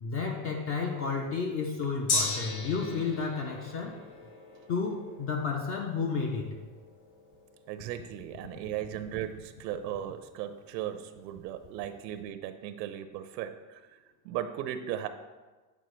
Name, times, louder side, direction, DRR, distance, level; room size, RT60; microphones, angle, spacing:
voice 1, 0.0-4.0 4.7-6.6, left 5 dB, 30° left, 2 dB, 0.4 m, -32 dB
Gong, 2.1-9.8 10.2-10.3, left 3 dB, 50° left, 1.9 m, -38 dB
voice 2, 7.7-13.8 14.2-15.1, right 11 dB, 80° right, 10 dB, 0.6 m, -37 dB
8.0 x 4.5 x 3.1 m, 1.3 s
supercardioid pair, 130°, 50 cm